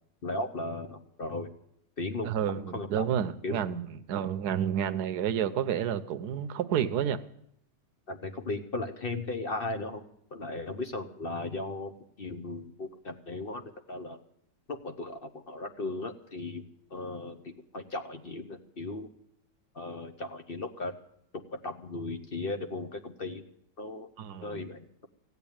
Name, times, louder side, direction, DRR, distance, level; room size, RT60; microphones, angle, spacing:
voice 1, 0.2-1.5 2.0-3.0 3.4-3.6 8.1-10.0 10.3-14.2 14.7-16.6 16.9-19.1 19.7-20.9 21.5-23.4 23.8-24.1 24.4-25.1, left 2 dB, 40° left, 7 dB, 0.9 m, -36 dB
voice 2, 2.2-7.2 24.2-24.7, right 9 dB, 70° right, 11 dB, 1.3 m, -30 dB
16.5 x 8.3 x 8.7 m, 0.74 s
omnidirectional pair, 1.9 m